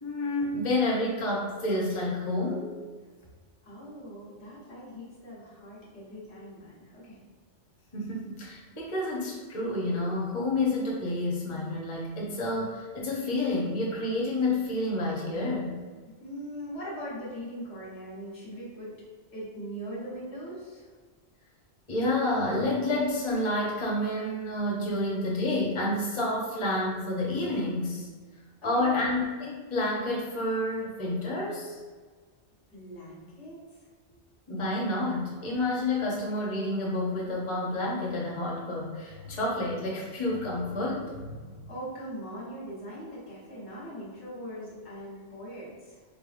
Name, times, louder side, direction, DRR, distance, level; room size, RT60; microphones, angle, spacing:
voice 1, 0.0-2.7 7.9-15.7 21.9-28.1 28.6-31.8 34.5-41.6, left 1 dB, 30° left, -3 dB, 0.8 m, -29 dB
voice 2, 3.6-7.2 16.2-18.9 19.3-20.9 28.6-28.9 32.7-33.8 41.7-46.0, equal, 80° left, -7 dB, 1.6 m, -41 dB
4.1 x 3.5 x 2.5 m, 1.4 s
omnidirectional pair, 1.2 m